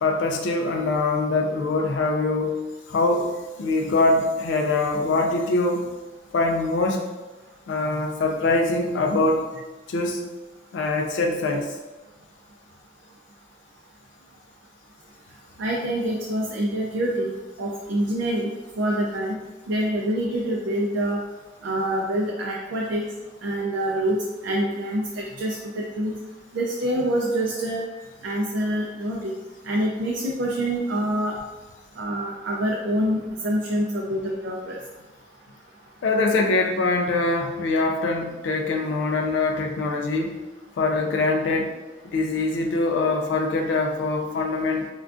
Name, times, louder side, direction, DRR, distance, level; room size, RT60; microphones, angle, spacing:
voice 1, 0.0-2.6 2.9-3.3 3.6-5.8 6.3-7.1 7.7-9.5 9.9-10.3 10.7-11.8 36.0-40.4 40.8-41.7 42.1-44.9, left 3 dB, 75° left, 3 dB, 0.3 m, -23 dB
voice 2, 15.6-17.3 17.6-19.4 19.7-21.2 21.6-23.0 23.4-24.2 24.4-26.2 26.5-27.8 28.2-29.3 29.6-31.3 32.0-34.8, right 1 dB, 80° right, -2 dB, 0.4 m, -26 dB
3.5 x 2.3 x 2.4 m, 1.2 s
head